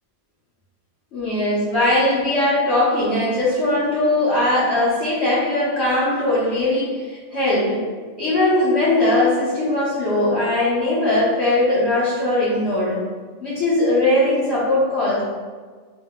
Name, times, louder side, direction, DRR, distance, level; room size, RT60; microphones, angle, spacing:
voice 1, 1.1-7.9 8.2-13.0 13.4-15.2, left 1 dB, 60° left, -9 dB, 1.4 m, -20 dB
5.9 x 2.1 x 3.6 m, 1.5 s
omnidirectional pair, 1.3 m